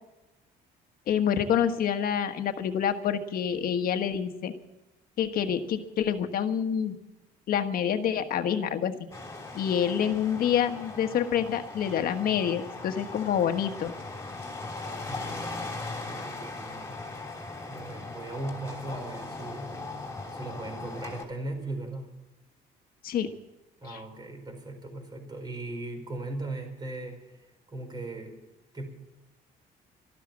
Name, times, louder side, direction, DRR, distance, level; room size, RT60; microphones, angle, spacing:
voice 1, 1.1-4.5 5.2-7.0 7.5-9.1 9.5-13.9 23.0-23.3 23.9-24.0, left 8 dB, 60° left, 7 dB, 1.4 m, -27 dB
sound 1, 9.1-21.2, left 3 dB, 15° left, 3.2 m, -39 dB
voice 2, 15.0-15.7 16.0-17.3 17.7-19.9 20.3-22.1 23.8-28.4 28.7-28.9, right 2 dB, 25° right, 4 dB, 4.8 m, -38 dB
13.0 x 12.5 x 7.4 m, 0.99 s
cardioid pair, 110°, 17 cm